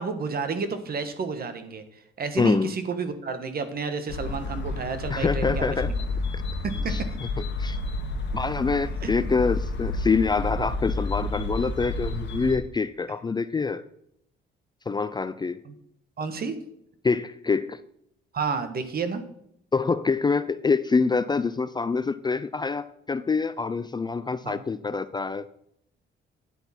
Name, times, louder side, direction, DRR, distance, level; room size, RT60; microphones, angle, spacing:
voice 1, 0.0-1.8 2.2-5.9 6.6-7.1 9.0-9.4 15.6-15.7 16.2-16.5 18.3-19.2 24.4-24.6, right 5 dB, 50° right, 10 dB, 1.3 m, -31 dB
voice 2, 2.4-2.7 5.1-5.9 6.9-7.0 7.6-7.8 8.3-13.8 14.9-15.6 17.0-17.8 19.7-25.5, left 4 dB, 20° left, 13 dB, 0.4 m, -25 dB
sound 1, 4.1-12.6, left 2 dB, 65° left, 1.3 m, -30 dB
10.0 x 8.0 x 4.3 m, 0.73 s
cardioid pair, 90°, 20 cm